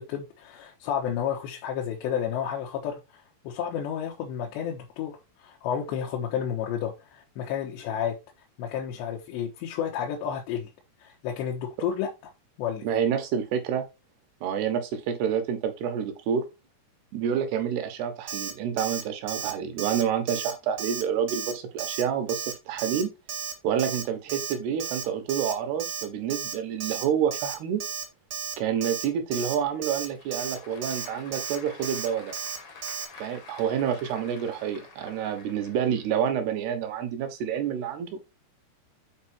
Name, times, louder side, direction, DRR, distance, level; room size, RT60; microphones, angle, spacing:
voice 1, 0.0-8.2 8.6-10.7 11.0-12.3 12.6-12.9, left 8 dB, 85° left, 3.5 m, -31 dB
voice 2, 12.8-13.8 14.4-16.5 17.1-23.1 23.6-27.8 28.6-32.3 33.2-38.2, right 8 dB, 75° right, 3.3 m, -28 dB
Alarm, 18.3-18.5 18.8-19.0 19.3-19.5 19.8-20.0 20.3-20.5 20.8-21.0 21.3-21.5 21.8-22.0 22.3-22.5 22.8-23.0 23.3-23.5 23.8-24.0 24.3-24.5 24.8-25.0 25.3-25.5 25.8-26.0 26.3-26.5 26.8-27.0 27.3-27.5 27.8-28.0 28.3-28.5 28.8-29.0 29.3-29.6 29.8-30.1 30.3-30.6 30.8-31.1 31.3-31.6 31.8-32.1 32.3-32.6 32.8-33.1, right 6 dB, 45° right, 1.5 m, -33 dB
Applause / Crowd, 29.6-36.4, left 5 dB, 55° left, 1.3 m, -49 dB
8.2 x 4.8 x 4.4 m
omnidirectional pair, 4.9 m